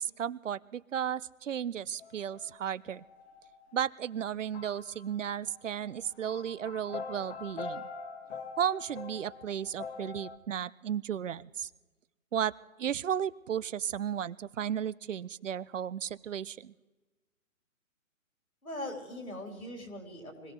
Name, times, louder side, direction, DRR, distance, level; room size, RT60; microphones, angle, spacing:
voice 1, 0.0-3.0 3.7-7.9 8.6-11.7 12.3-12.5 12.8-16.7, right 9 dB, 65° right, 21 dB, 0.6 m, -34 dB
sound 1, 2.0-2.6 2.9-3.9 4.3-10.4, left 5 dB, 50° left, 1.5 m, -43 dB
voice 2, 18.6-20.5, left 1 dB, 90° left, 1 dB, 4.6 m, -41 dB
25.0 x 16.5 x 3.3 m, 1.2 s
figure-of-eight pair, 130°, 41 cm